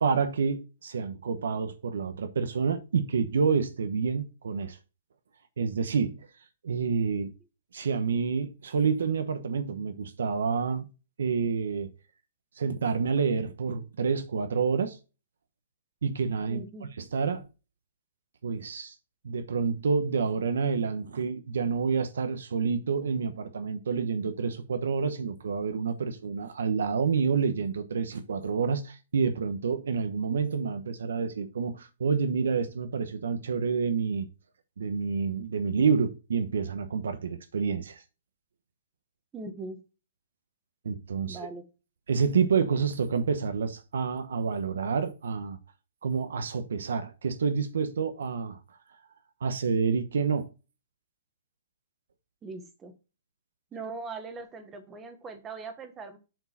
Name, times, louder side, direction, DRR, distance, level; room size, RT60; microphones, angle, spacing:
voice 1, 0.0-4.8 5.6-6.3 6.6-7.3 7.7-10.9 11.2-11.9 12.6-15.0 16.0-16.6 17.0-17.4 18.4-18.9 19.2-34.3 34.8-38.0 40.8-41.5 42.1-45.6 46.0-48.6 49.4-50.5, right 5 dB, 90° right, 1.1 m, -28 dB
voice 2, 16.5-16.9 39.3-39.8 41.3-41.7 52.4-52.9 53.7-56.2, right 3 dB, 10° right, 1.0 m, -40 dB
7.7 x 4.8 x 4.1 m
hypercardioid pair, 175°, 0 cm